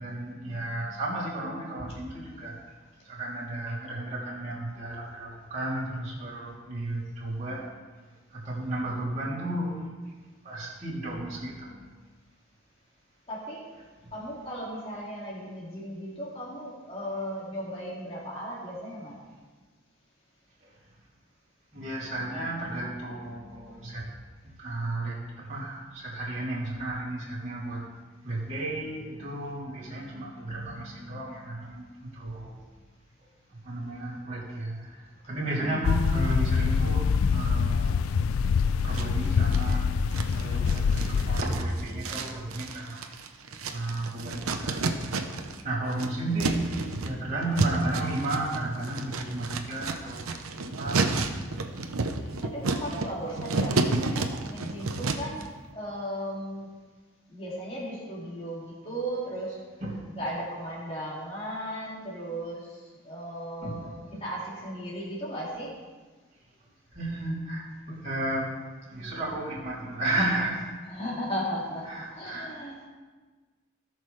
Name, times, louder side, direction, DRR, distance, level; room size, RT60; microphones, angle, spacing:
voice 1, 0.0-2.7 3.0-7.6 8.3-9.9 10.4-11.8 14.0-14.1 20.6-20.7 21.7-24.1 24.6-27.8 28.2-32.6 33.5-38.0 38.6-43.2 43.7-46.6 47.0-50.3 50.6-51.5 59.8-60.0 63.6-64.2 66.9-70.7 71.9-72.6, right 1 dB, 35° right, -8 dB, 2.9 m, -33 dB
voice 2, 13.3-13.7 14.1-19.2 35.6-35.8 52.2-55.5 55.7-56.7 57.3-59.6 60.1-65.7 70.9-72.8, equal, 25° left, -6 dB, 2.5 m, -36 dB
sound 1, 35.8-41.4, left 6 dB, 85° left, 0.4 m, -25 dB
sound 2, 38.9-39.7 40.1-45.6 45.9-55.4, right 3 dB, 90° right, 0.8 m, -31 dB
17.5 x 6.2 x 3.3 m, 1.4 s
head